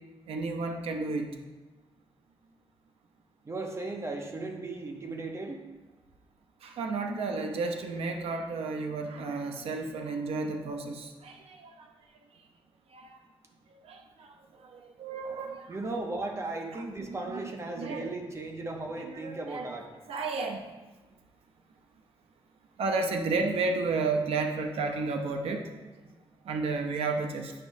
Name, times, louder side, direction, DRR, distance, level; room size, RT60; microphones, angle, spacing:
voice 1, 0.3-1.3 6.6-11.9 12.9-13.2 13.7-14.3 14.6-15.7 16.7-16.8 17.1-17.4 17.8-18.1 19.0-19.7 20.1-20.6 22.8-25.9 26.4-27.5, right 3 dB, 80° right, 4 dB, 0.7 m, -32 dB
voice 2, 3.4-5.6 15.7-19.9, right 2 dB, 30° right, 3 dB, 0.9 m, -36 dB
8.7 x 6.0 x 2.7 m, 1.2 s
cardioid pair, 115°, 10 cm